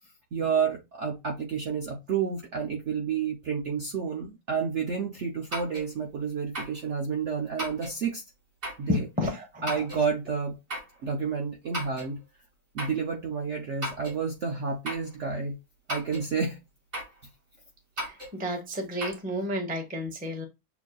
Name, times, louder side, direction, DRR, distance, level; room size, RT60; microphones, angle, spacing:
voice 1, 0.3-8.2 8.8-9.1 9.6-10.6 11.0-12.2 12.7-15.6 15.9-16.6, right 6 dB, 65° right, 0.7 m, -30 dB
sound 1, 5.5-5.9 6.5-6.8 7.6-8.0 8.6-8.9 9.7-10.0 10.7-11.0 11.7-12.1 12.8-13.0 13.8-14.2 14.8-15.1 15.9-16.3 16.9-17.2 18.0-18.3 19.0-19.2, right 1 dB, 35° right, 1.8 m, -35 dB
voice 2, 8.9-9.6 18.0-18.1 18.4-20.4, left 1 dB, 10° right, 0.4 m, -31 dB
6.9 x 2.5 x 2.3 m
omnidirectional pair, 1.8 m